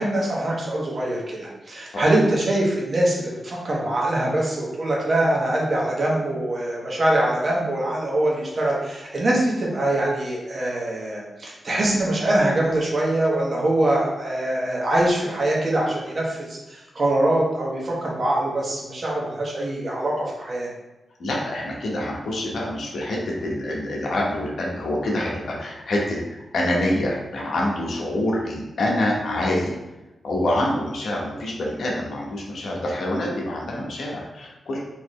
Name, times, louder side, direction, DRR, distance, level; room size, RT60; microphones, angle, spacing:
voice 1, 0.0-20.7, right 1 dB, 50° right, -3 dB, 1.2 m, -23 dB
voice 2, 21.2-29.8 30.2-34.8, left 1 dB, 75° left, -2 dB, 1.0 m, -26 dB
4.1 x 3.1 x 3.2 m, 1.0 s
cardioid pair, 80°, 0 cm